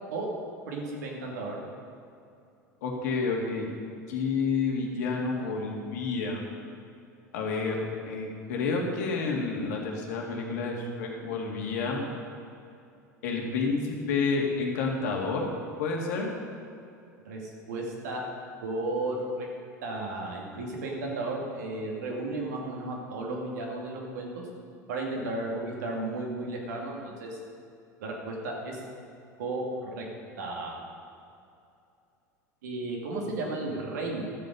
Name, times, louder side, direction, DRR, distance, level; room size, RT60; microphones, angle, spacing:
voice 1, 0.7-1.6 17.3-18.2 18.6-19.5 19.8-24.5 24.9-27.4 28.0-28.8 29.4-30.1 30.4-30.8 32.6-34.2, right 2 dB, 65° right, -1 dB, 2.4 m, -34 dB
voice 2, 2.8-3.7 4.1-6.4 7.3-12.0 13.2-15.4 15.8-16.3, left 4 dB, 60° left, 0 dB, 2.1 m, -29 dB
13.0 x 7.9 x 5.4 m, 2.6 s
figure-of-eight pair, 80°, 10 cm